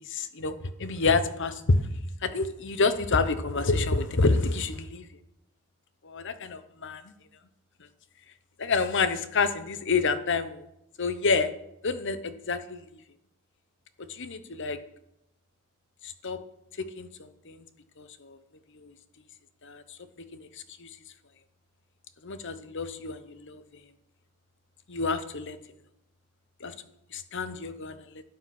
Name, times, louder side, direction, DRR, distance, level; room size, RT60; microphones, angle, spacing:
voice 1, 0.0-1.8 2.2-5.1 6.0-7.1 8.6-10.6 11.0-11.5 11.8-12.8 14.0-14.8 16.0-16.4 16.8-17.6 18.0-18.4 18.7-18.9 19.6-20.0 20.3-20.9 22.2-23.6 24.9-25.6 26.6-26.7 27.1-28.2, left 4 dB, 60° left, 12 dB, 0.9 m, -28 dB
12.0 x 8.8 x 6.0 m, 0.82 s
head